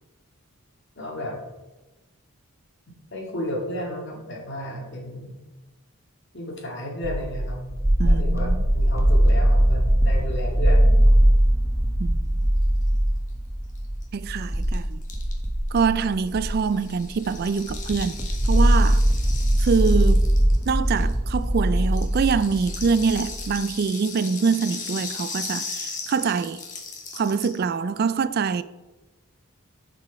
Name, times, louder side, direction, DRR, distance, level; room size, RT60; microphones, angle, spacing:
voice 1, 1.0-1.4 3.1-5.4 6.3-7.6 8.0-11.1, equal, 55° left, 2.0 m, -33 dB
sound 1, 7.0-16.6 17.0-17.4 17.7-23.5, right 1 dB, 15° right, 0.8 m, -21 dB
voice 2, 8.0-8.6 12.0-12.4 14.1-15.0 15.7-19.0 19.6-20.2 20.7-26.6 27.1-28.6, right 5 dB, 45° right, 0.3 m, -25 dB
Rattle (instrument), 13.8-13.9 14.0-14.1 14.3-21.4 21.8-27.6, left 4 dB, 35° left, 1.4 m, -37 dB
10.5 x 5.0 x 4.6 m
head